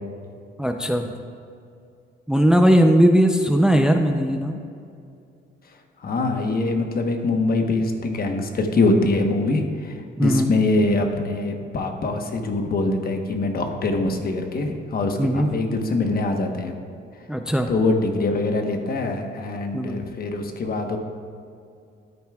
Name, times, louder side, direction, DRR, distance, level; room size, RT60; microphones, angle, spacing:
voice 1, 0.6-1.1 2.3-4.6 10.2-10.5 15.2-15.5 17.3-17.7 19.7-20.0, equal, 5° right, 5 dB, 0.5 m, -18 dB
voice 2, 6.0-16.7 17.7-21.0, left 2 dB, 50° left, 4 dB, 1.1 m, -23 dB
13.5 x 9.2 x 2.4 m, 2.5 s
cardioid pair, 90°, 20 cm